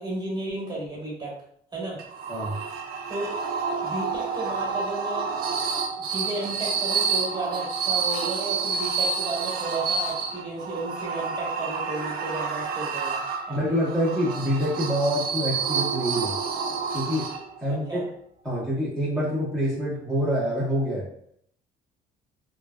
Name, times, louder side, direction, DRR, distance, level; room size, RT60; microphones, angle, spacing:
voice 1, 0.0-1.4 1.7-2.0 3.1-3.3 3.8-5.3 6.0-13.2 13.5-13.8 17.9-18.1, right 2 dB, 25° right, -4 dB, 1.2 m, -33 dB
sound 1, 2.0-17.7, right 5 dB, 60° right, 0.4 m, -29 dB
voice 2, 13.5-16.4 16.9-17.3 17.6-18.0 18.4-21.1, equal, 5° left, -9 dB, 0.9 m, -26 dB
3.1 x 2.3 x 2.2 m, 0.67 s
cardioid pair, 110°, 17 cm